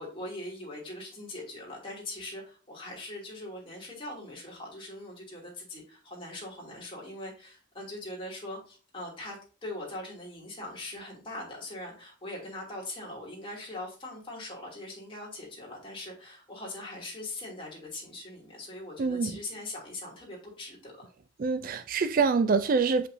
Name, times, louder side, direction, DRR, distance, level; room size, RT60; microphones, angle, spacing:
voice 1, 0.0-21.1, left 1 dB, 25° left, -2 dB, 2.7 m, -41 dB
voice 2, 19.0-19.3 21.4-23.1, right 4 dB, 45° right, 12 dB, 0.4 m, -25 dB
6.9 x 5.6 x 2.7 m, 0.37 s
head